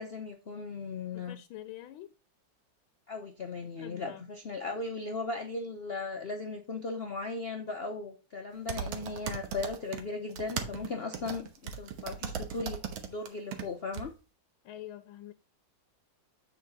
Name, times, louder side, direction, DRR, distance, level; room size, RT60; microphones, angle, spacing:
voice 1, 0.0-1.4 3.1-12.8 13.1-14.1, left 3 dB, 70° left, 0.5 m, -37 dB
voice 2, 1.1-2.1 3.8-4.2 14.6-15.3, left 13 dB, 90° left, 1.5 m, -45 dB
sound 1, 8.7-10.0 10.3-13.6 13.9-14.0, right 7 dB, 85° right, 1.9 m, -37 dB
8.4 x 4.8 x 4.0 m
omnidirectional pair, 2.2 m